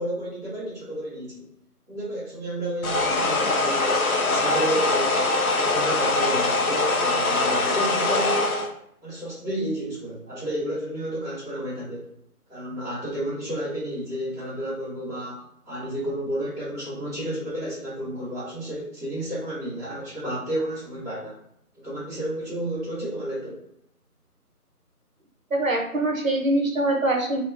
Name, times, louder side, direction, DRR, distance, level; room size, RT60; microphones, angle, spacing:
voice 1, 0.0-1.5 1.9-8.8 9.0-12.0 12.5-21.4 21.7-23.6, right 1 dB, 10° right, -16 dB, 1.4 m, -31 dB
sound 1, 2.8-8.7, left 2 dB, 65° left, 0.6 m, -23 dB
voice 2, 25.5-27.4, right 1 dB, 60° right, 2 dB, 0.7 m, -23 dB
3.2 x 2.1 x 2.6 m, 0.73 s
figure-of-eight pair, 170°, 46 cm